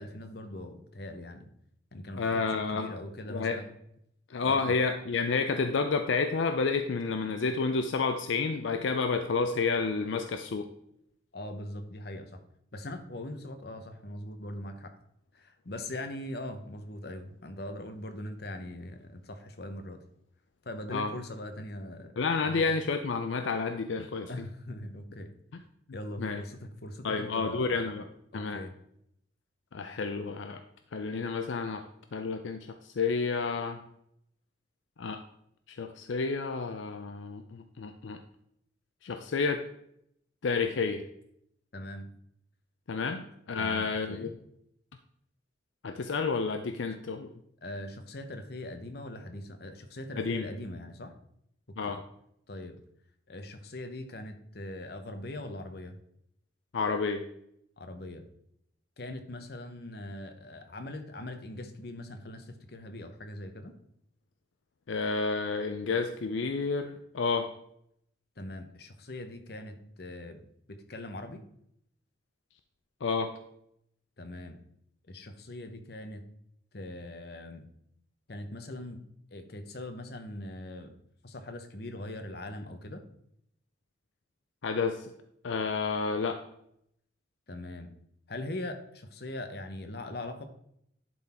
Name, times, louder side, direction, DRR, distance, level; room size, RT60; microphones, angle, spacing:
voice 1, 0.0-1.5 1.9-3.7 4.4-4.8 11.3-12.4 12.7-14.9 15.3-20.0 20.6-22.7 24.3-25.3 25.9-27.8 28.3-28.7 41.7-42.1 43.6-44.3 47.6-51.1 51.8-52.0 52.5-52.8 53.3-56.0 57.8-58.3 59.0-63.7 68.4-70.4 70.7-71.4 74.2-74.6 75.1-76.2 76.7-77.6 78.3-79.0 79.3-80.9 81.2-83.0 87.5-87.9 88.3-90.5, left 1 dB, 55° left, 7 dB, 0.9 m, -41 dB
voice 2, 2.1-2.9 3.3-3.6 4.3-10.7 20.9-21.1 22.2-24.5 25.5-25.6 26.2-26.4 27.0-28.0 28.3-28.6 29.7-30.6 30.9-31.8 32.1-33.8 35.0-35.2 35.7-38.2 39.0-39.7 40.4-41.1 42.9-44.3 45.8-47.3 50.2-50.5 51.8-52.0 56.7-57.2 64.9-67.5 73.0-73.4 84.6-85.1 85.4-86.4, left 4 dB, 80° left, 7 dB, 0.5 m, -30 dB
11.0 x 4.0 x 4.3 m, 0.73 s
head